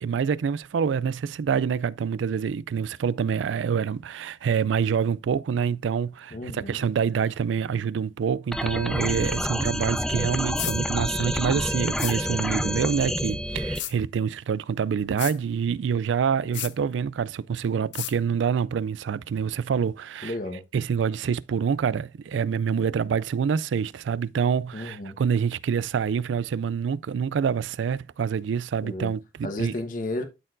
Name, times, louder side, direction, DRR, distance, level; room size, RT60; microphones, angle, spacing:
voice 1, 0.0-20.3 20.7-29.7, right 7 dB, 85° right, 0.3 m, -26 dB
voice 2, 6.3-6.8 20.2-20.6 24.7-25.2 28.8-29.1 29.4-30.2, left 2 dB, 45° left, 1.1 m, -33 dB
sound 1, 8.5-13.8, equal, ahead, 0.5 m, -28 dB
sound 2, 10.6-10.8 12.0-12.2 13.7-13.9 15.2-15.4 16.5-16.7 17.9-18.1, left 14 dB, 80° left, 0.5 m, -32 dB
12.5 x 4.4 x 2.5 m
head